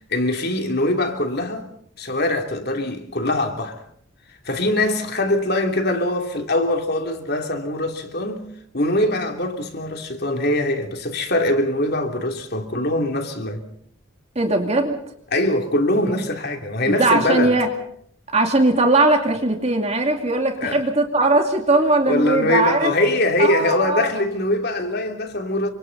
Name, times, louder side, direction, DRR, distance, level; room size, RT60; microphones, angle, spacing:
voice 1, 0.0-1.7 2.0-3.8 4.3-8.4 8.7-13.6 15.3-17.6 20.6-20.9 22.0-25.7, left 1 dB, 50° left, 3.1 m, -22 dB
voice 2, 14.3-15.0 16.9-17.7 18.3-22.9 23.4-24.1, right 2 dB, 30° right, 2.6 m, -19 dB
30.0 x 25.5 x 4.1 m
head